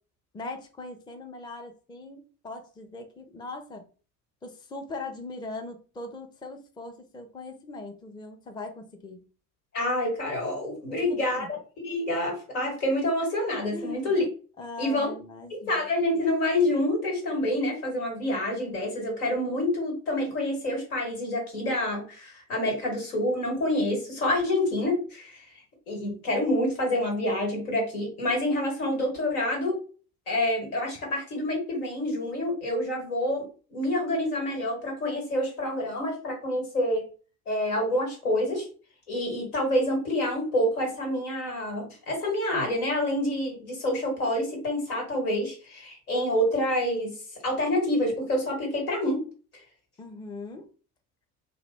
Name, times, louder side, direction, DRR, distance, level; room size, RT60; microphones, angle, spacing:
voice 1, 0.3-3.9 4.4-9.3 10.9-11.5 13.7-14.1 14.6-15.8 50.0-50.7, left 2 dB, 10° left, 5 dB, 0.5 m, -40 dB
voice 2, 9.7-11.4 11.8-14.2 14.8-15.1 15.5-25.4 25.9-29.8 30.3-33.4 33.7-37.0 37.5-38.7 39.1-47.2 47.4-49.2, left 1 dB, 80° left, 1 dB, 1.4 m, -27 dB
2.8 x 2.1 x 3.3 m, 0.37 s
figure-of-eight pair, 60°, 44 cm